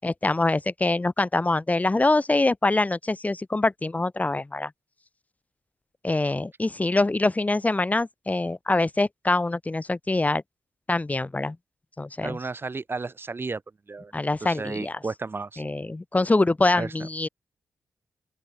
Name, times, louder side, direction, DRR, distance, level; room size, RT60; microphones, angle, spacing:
voice 1, 0.0-4.7 6.0-10.4 10.9-11.6 12.0-12.4 14.1-15.0 15.6-17.3, left 2 dB, 25° left, 5.4 m, -24 dB
voice 2, 12.2-13.6 13.9-14.1 14.4-15.6 16.7-17.1, right 4 dB, 40° right, 3.3 m, -33 dB
open air
cardioid pair, 55°, 6 cm